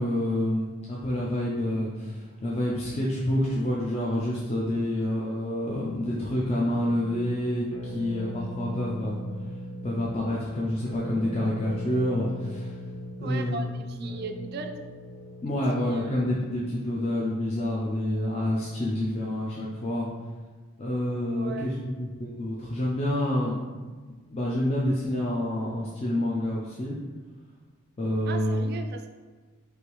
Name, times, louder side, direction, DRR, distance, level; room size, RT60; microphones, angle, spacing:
voice 1, 0.0-9.2 9.8-12.8 13.2-14.2 15.4-20.1 20.8-23.6 24.3-27.0 28.0-28.7, left 1 dB, 30° left, -5 dB, 0.4 m, -28 dB
sound 1, 6.7-16.6, left 1 dB, 85° left, 0.5 m, -40 dB
voice 2, 13.2-14.7 15.8-16.2 21.2-21.8 28.3-29.1, right 4 dB, 50° right, 6 dB, 0.3 m, -38 dB
3.3 x 2.6 x 4.5 m, 1.4 s
head